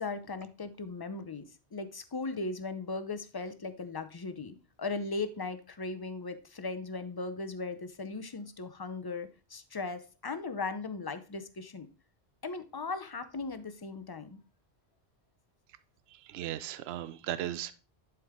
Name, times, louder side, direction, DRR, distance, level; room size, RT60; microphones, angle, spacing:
voice 1, 0.0-11.9 12.4-14.4, left 3 dB, 30° left, 0.5 m, -38 dB
voice 2, 16.2-17.7, right 12 dB, 75° right, 0.8 m, -36 dB
11.0 x 4.6 x 3.6 m
omnidirectional pair, 1.1 m